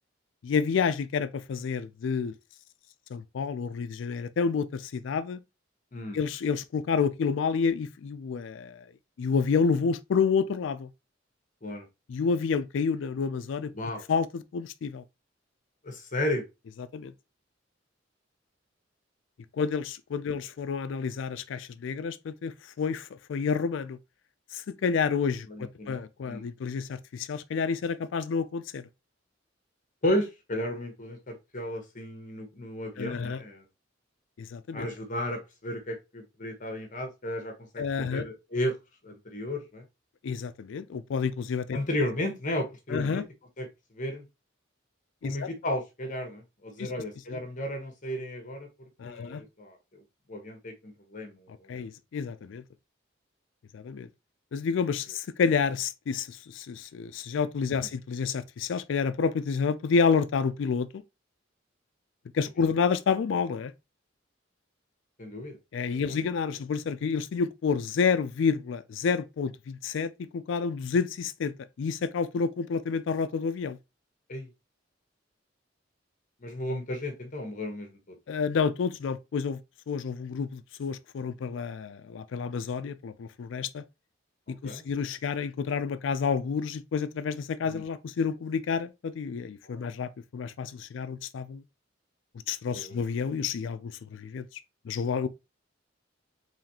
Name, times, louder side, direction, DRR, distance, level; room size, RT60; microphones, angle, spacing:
voice 1, 0.4-2.3 3.1-5.4 6.1-8.8 9.2-10.9 12.1-13.7 14.1-15.0 16.9-17.1 19.6-24.0 24.5-28.8 33.0-33.4 34.4-34.9 37.8-38.2 40.2-41.8 42.9-43.2 45.2-45.5 46.8-46.9 47.3-47.4 49.0-49.4 51.7-52.6 53.7-54.1 54.5-60.9 62.3-63.7 65.7-71.5 71.8-73.8 78.3-79.6 79.9-83.8 84.5-91.6 92.5-94.4 94.9-95.3, left 5 dB, 70° left, 0.4 m, -29 dB
voice 2, 13.7-14.0 15.8-16.4 20.3-20.4 25.5-26.5 30.0-33.6 34.7-38.7 39.0-39.8 41.7-43.2 43.6-43.7 43.9-44.2 45.2-48.7 49.0-50.0 50.3-51.8 57.7-57.9 65.2-66.2 74.3-74.5 76.4-78.2 84.6-84.8 87.7-87.8 89.6-89.8 92.7-93.0, left 1 dB, 45° left, 1.0 m, -34 dB
4.1 x 3.1 x 2.8 m
head